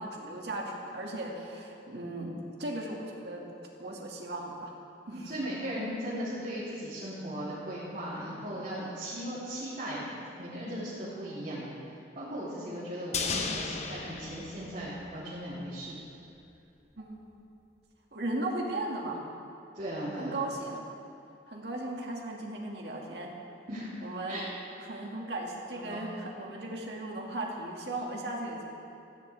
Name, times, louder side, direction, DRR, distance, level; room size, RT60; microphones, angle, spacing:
voice 1, 0.0-3.4 3.8-4.7 5.1-5.3 17.0-17.3 18.1-19.2 20.2-20.9 21.5-23.3 24.0-24.5 24.8-28.6, right 1 dB, 65° right, -2 dB, 2.3 m, -37 dB
voice 2, 5.1-10.0 10.4-11.7 12.1-15.9 19.7-20.4 23.7-23.9 24.3-24.4 25.7-26.0, equal, 45° right, -11 dB, 3.5 m, -37 dB
sound 1, 13.1-15.5 15.8-15.9, left 4 dB, 40° left, 1.0 m, -35 dB
17.5 x 15.0 x 3.5 m, 2.7 s
head